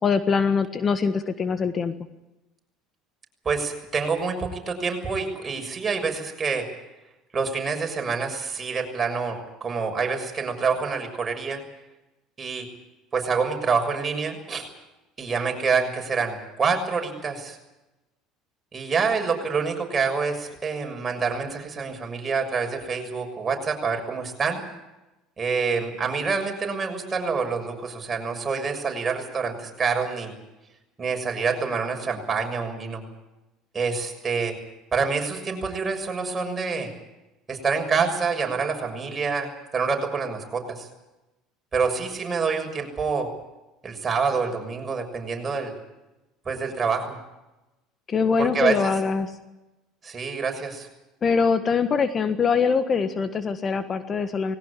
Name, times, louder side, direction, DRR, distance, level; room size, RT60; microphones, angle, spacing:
voice 1, 0.0-1.9 48.1-49.3 51.2-54.6, left 5 dB, 35° left, 10 dB, 1.5 m, -23 dB
voice 2, 3.4-6.6 7.3-11.6 12.4-12.7 13.1-14.7 15.2-17.6 18.7-24.6 25.4-30.3 31.0-33.0 33.7-34.5 34.9-36.9 37.5-40.9 41.7-43.3 43.8-45.7 46.4-47.2 48.4-48.9 50.0-50.9, right 5 dB, 30° right, 3 dB, 6.6 m, -27 dB
20.5 x 17.5 x 10.0 m, 1.0 s
hypercardioid pair, 75°, 0 cm